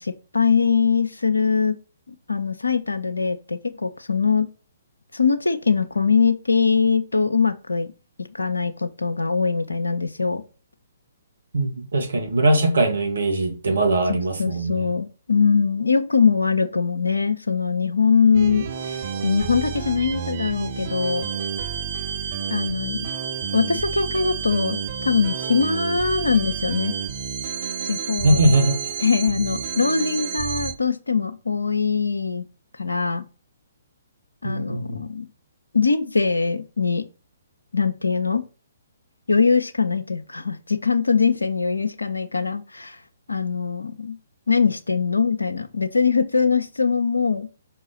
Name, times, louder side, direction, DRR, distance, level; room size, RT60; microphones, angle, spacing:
voice 1, 0.0-1.7 2.1-4.5 5.1-7.9 8.2-10.4 14.1-21.3 22.5-23.1 23.5-26.9 27.8-28.4 29.0-32.4 32.8-33.2 34.4-35.3 35.7-37.0 37.7-38.4 39.3-43.0 43.3-44.2 44.5-47.5, left 5 dB, 80° left, 1.2 m, -22 dB
voice 2, 11.5-14.9 28.2-28.9 34.4-35.0, right 2 dB, 65° right, 2.1 m, -21 dB
sound 1, 18.3-30.7, right 7 dB, 50° right, 1.5 m, -30 dB
6.0 x 4.5 x 6.0 m
figure-of-eight pair, 125°, 0 cm